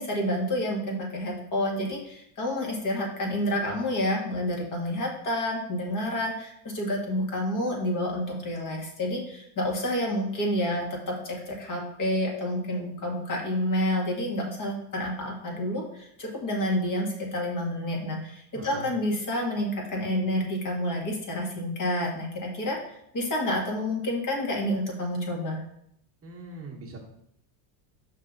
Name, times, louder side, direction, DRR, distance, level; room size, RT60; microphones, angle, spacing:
voice 1, 0.0-22.8 23.1-25.6, left 1 dB, 40° left, 0 dB, 1.9 m, -29 dB
voice 2, 18.5-18.9 26.2-27.0, right 3 dB, 25° right, -2 dB, 1.2 m, -40 dB
5.7 x 5.4 x 3.9 m, 0.74 s
supercardioid pair, 115°, 50 cm